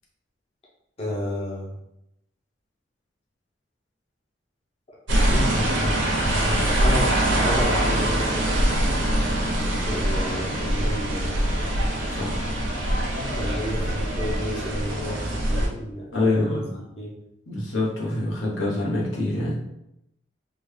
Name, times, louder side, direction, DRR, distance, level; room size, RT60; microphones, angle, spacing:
voice 1, 1.0-1.8 5.3-8.5 9.6-11.4 13.2-17.2, equal, 30° left, -5 dB, 0.7 m, -32 dB
sound 1, 5.1-15.7, right 1 dB, 70° right, 0.8 m, -23 dB
voice 2, 12.1-12.5 16.1-16.7 17.5-19.6, left 2 dB, 80° left, -4 dB, 1.1 m, -26 dB
3.7 x 2.3 x 3.2 m, 0.83 s
head